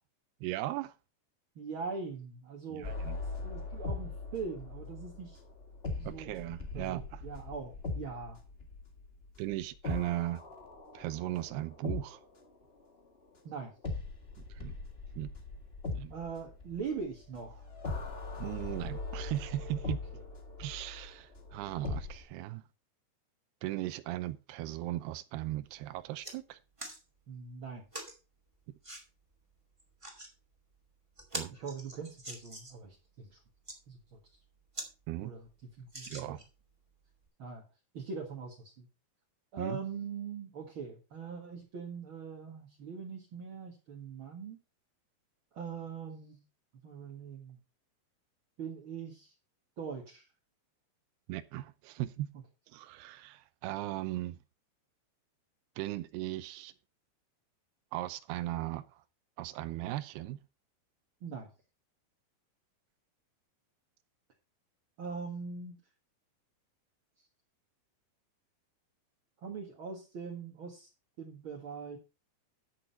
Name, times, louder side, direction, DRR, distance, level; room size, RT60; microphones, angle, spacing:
voice 1, 0.4-0.9 2.7-3.2 6.1-7.2 9.4-10.4 10.9-12.2 14.6-14.8 15.2-15.3 15.9-16.1 18.4-20.0 20.6-22.6 23.6-26.6 31.3-31.5 35.1-35.3 36.1-36.4 39.6-39.8 51.3-52.3 52.7-54.4 55.8-56.7 57.9-58.8 59.4-60.4, right 15 dB, 85° right, 2.7 m, -37 dB
voice 2, 1.6-3.0 3.4-5.4 6.0-6.4 6.7-8.4 13.4-13.7 16.1-17.7 19.8-20.2 27.3-27.8 31.5-33.4 33.9-34.2 35.2-35.5 35.8-36.4 37.4-37.6 37.9-38.9 39.5-44.6 45.5-46.4 46.8-47.6 48.6-49.3 49.8-50.2 61.2-61.5 65.0-65.8 69.4-70.9 71.2-72.0, right 5 dB, 45° right, 1.8 m, -42 dB
sound 1, 2.8-12.6 13.8-22.2, left 3 dB, 85° left, 0.5 m, -41 dB
sound 2, 25.5-25.7 26.0-26.4 26.8-27.0 27.9-28.2 28.8-29.0 29.8-30.3 30.8-30.9 31.2-32.8 33.5-33.8 34.3-34.4 34.7-34.9 35.3-35.4 35.9-36.6 37.3-37.4, right 1 dB, 10° right, 1.8 m, -43 dB
13.0 x 6.5 x 4.4 m
omnidirectional pair, 4.6 m